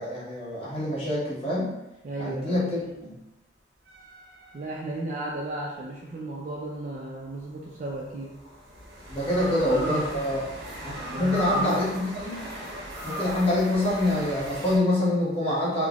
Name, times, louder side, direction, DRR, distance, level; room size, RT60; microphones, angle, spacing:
voice 1, 0.0-1.7 2.2-3.2 9.1-10.5 10.8-12.4 13.0-15.9, left 1 dB, 30° left, -7 dB, 0.8 m, -26 dB
voice 2, 2.0-2.9 4.5-8.3 9.4-10.0 11.0-11.9, right 2 dB, 45° right, -4 dB, 0.3 m, -35 dB
sound 1, 3.9-5.4 7.2-14.8, equal, 75° right, 0.7 m, -37 dB
3.2 x 2.0 x 2.3 m, 0.96 s
head